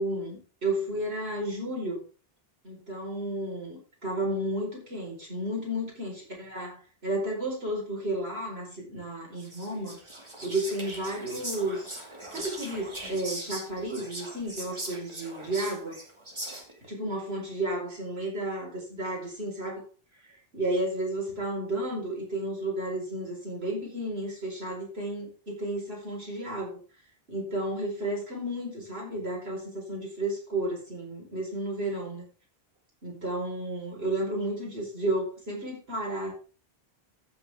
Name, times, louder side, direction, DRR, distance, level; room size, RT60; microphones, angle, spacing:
voice 1, 0.0-2.0 2.6-10.0 10.4-11.9 12.3-16.0 16.9-19.8 20.5-26.8 27.3-32.2 33.0-36.3, right 1 dB, 75° right, -2 dB, 5.0 m, -32 dB
Whispering, 9.4-16.9, right 1 dB, 30° right, 2.3 m, -40 dB
14.5 x 7.3 x 3.5 m, 0.35 s
omnidirectional pair, 1.0 m